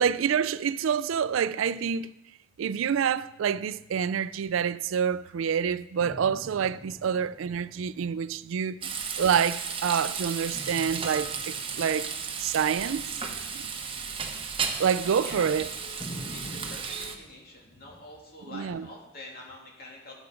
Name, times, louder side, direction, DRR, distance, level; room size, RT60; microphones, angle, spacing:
voice 1, 0.0-2.1 2.6-8.8 9.2-12.1 12.4-13.1 14.8-15.7 18.5-18.9, right 7 dB, 85° right, 0.4 m, -27 dB
sound 1, 6.0-9.7 10.5-15.5 16.0-16.8, equal, 25° left, 1.3 m, -47 dB
Frying (food), 8.8-17.1, right 6 dB, 30° right, 1.0 m, -34 dB
voice 2, 16.3-20.1, left 2 dB, 50° left, 2.6 m, -46 dB
11.5 x 7.1 x 5.1 m
head